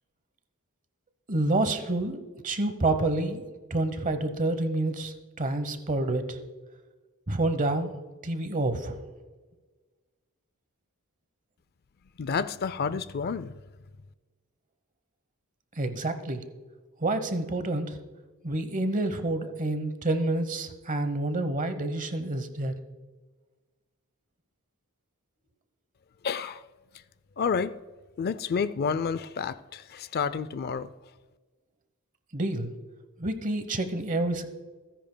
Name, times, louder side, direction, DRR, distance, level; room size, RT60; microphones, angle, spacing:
voice 1, 1.3-3.4 3.7-6.4 7.3-7.9 8.2-9.0 15.8-16.4 17.0-18.0 18.4-22.7 32.3-32.7 33.2-34.4, right 2 dB, 35° right, 0.9 m, -28 dB
voice 2, 12.2-13.5 26.2-26.6 27.4-27.7 28.2-30.9, left 6 dB, 45° left, 0.4 m, -29 dB
28.0 x 10.0 x 2.2 m
head